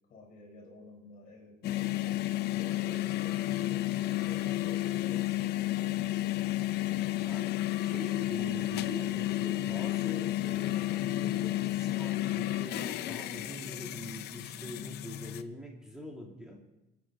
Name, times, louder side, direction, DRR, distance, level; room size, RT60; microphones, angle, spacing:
voice 1, 0.0-1.9 2.4-6.2, left 1 dB, 55° left, 0 dB, 4.2 m, -52 dB
sound 1, 1.6-15.4, left 15 dB, 75° left, 0.6 m, -32 dB
voice 2, 7.2-16.6, equal, 5° right, -2 dB, 2.7 m, -44 dB
24.5 x 9.2 x 3.8 m, 0.93 s
cardioid pair, 110°, 17 cm